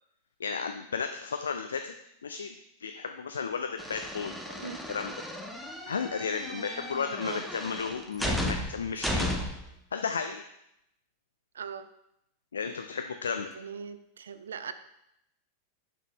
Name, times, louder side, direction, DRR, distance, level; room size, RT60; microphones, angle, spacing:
voice 1, 0.4-1.9 2.2-5.1 5.9-9.3 9.9-10.4 12.5-13.5, left 5 dB, 70° left, 6 dB, 0.3 m, -34 dB
sound 1, 3.8-9.7, left 1 dB, ahead, 0.7 m, -34 dB
voice 2, 11.5-11.9 13.3-14.7, right 7 dB, 65° right, 11 dB, 0.4 m, -40 dB
6.2 x 5.2 x 3.1 m, 0.79 s
figure-of-eight pair, 90°, 0 cm